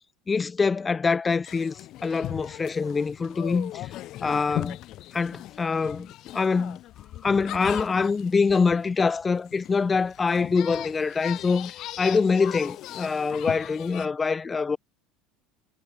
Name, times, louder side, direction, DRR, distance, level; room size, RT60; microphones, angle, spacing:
voice 1, 0.3-1.8 2.0-3.9 4.2-4.8 5.1-6.1 6.3-6.8 7.2-11.7 12.0-14.8, left 4 dB, 20° left, 0.3 m, -24 dB
sound 1, 1.4-14.1, left 15 dB, 55° left, 1.2 m, -39 dB
supercardioid pair, 120°, 0 cm